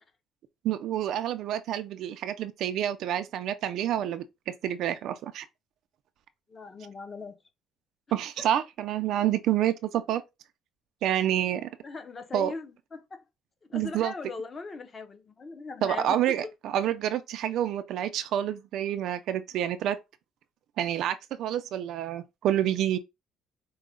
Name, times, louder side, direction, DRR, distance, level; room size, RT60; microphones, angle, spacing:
voice 1, 0.6-5.5 8.1-10.2 11.0-11.7 12.3-12.5 13.7-14.1 15.8-20.0 20.8-23.0, right 11 dB, 55° right, 0.4 m, -28 dB
voice 2, 6.5-7.4 11.8-13.2 13.7-16.2, left 4 dB, 20° left, 0.6 m, -39 dB
4.6 x 2.1 x 3.7 m
cardioid pair, 175°, 0 cm